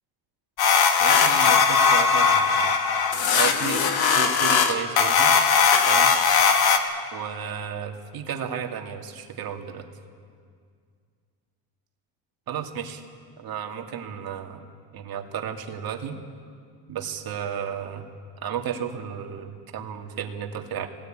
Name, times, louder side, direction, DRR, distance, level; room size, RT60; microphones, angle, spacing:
sound 1, 0.6-6.8, left 6 dB, 50° left, 2.1 m, -19 dB
voice 1, 1.0-2.7 3.3-3.9 4.2-5.3 5.9-6.1 7.1-9.9 12.5-13.0 13.4-14.6 14.9-16.2 16.9-18.1 18.4-20.9, right 8 dB, 45° right, 3 dB, 2.7 m, -33 dB
21.5 x 18.5 x 9.2 m, 2.1 s
supercardioid pair, 110°, 49 cm